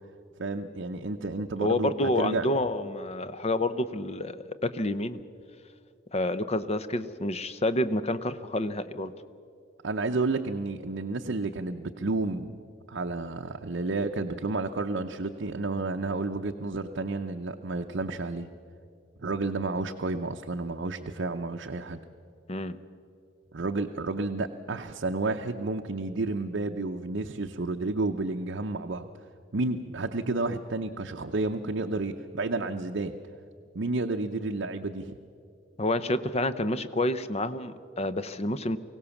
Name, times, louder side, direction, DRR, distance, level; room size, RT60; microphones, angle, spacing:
voice 1, 0.4-2.5 9.8-12.6 12.9-18.5 19.2-22.0 23.5-29.1 29.5-33.2 33.7-35.2, right 3 dB, 65° right, 3 dB, 0.7 m, -31 dB
voice 2, 1.6-5.2 6.1-9.1 22.5-22.8 35.8-38.8, left 1 dB, 30° left, 12 dB, 0.7 m, -28 dB
23.5 x 16.5 x 7.1 m, 2.4 s
head